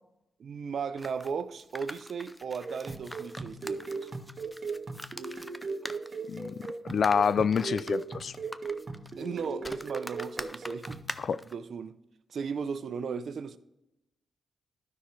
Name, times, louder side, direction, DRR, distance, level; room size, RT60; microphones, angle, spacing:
voice 1, 0.4-4.1 9.2-11.0 11.5-12.0 12.3-13.6, right 6 dB, 70° right, 0.6 m, -36 dB
sound 1, 1.0-11.5, left 1 dB, 5° left, 0.5 m, -44 dB
sound 2, 2.6-11.1, right 4 dB, 50° right, 1.4 m, -38 dB
voice 2, 6.9-8.3 11.2-11.4, left 6 dB, 65° left, 0.3 m, -27 dB
12.5 x 5.8 x 3.3 m
cardioid pair, 65°, 0 cm